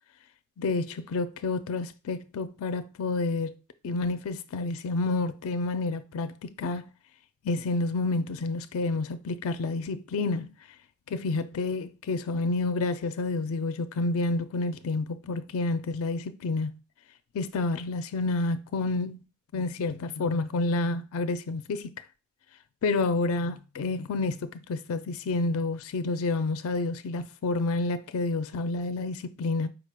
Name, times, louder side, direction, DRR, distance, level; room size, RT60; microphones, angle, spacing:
voice 1, 0.6-3.5 3.8-6.9 7.4-10.5 11.1-16.8 17.3-19.2 19.5-21.9 22.8-29.7, left 3 dB, 65° left, 0.4 m, -29 dB
4.9 x 2.2 x 4.8 m
head